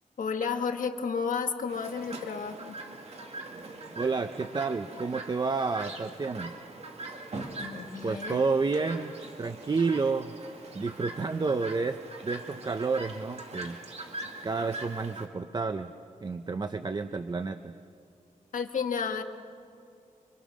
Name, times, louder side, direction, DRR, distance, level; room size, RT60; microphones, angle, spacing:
voice 1, 0.2-2.8 7.6-8.4 18.5-19.2, left 5 dB, 70° left, 5 dB, 1.5 m, -32 dB
Chirp tweet, 1.7-15.3, right 2 dB, 50° right, 2.2 m, -42 dB
voice 2, 4.0-6.5 8.0-10.3 10.7-13.8 14.4-15.9 16.2-17.8, right 4 dB, 30° right, 9 dB, 0.6 m, -30 dB
26.0 x 25.0 x 6.3 m, 2.5 s
wide cardioid pair, 165°, 14 cm